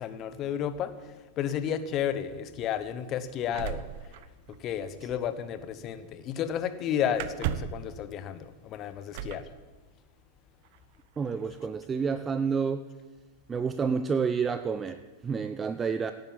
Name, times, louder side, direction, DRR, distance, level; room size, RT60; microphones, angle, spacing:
voice 1, 0.0-3.9 4.5-9.4, left 9 dB, 35° left, 12 dB, 1.1 m, -32 dB
sound 1, 3.5-4.8 5.1-5.3 7.1-7.9 9.1-9.5 10.6-10.8 11.2-11.6, right 11 dB, 50° right, 0.8 m, -35 dB
voice 2, 11.2-12.9 13.5-16.1, right 5 dB, 20° right, 11 dB, 0.5 m, -29 dB
17.0 x 9.0 x 7.5 m, 1.2 s
figure-of-eight pair, 90°, 0 cm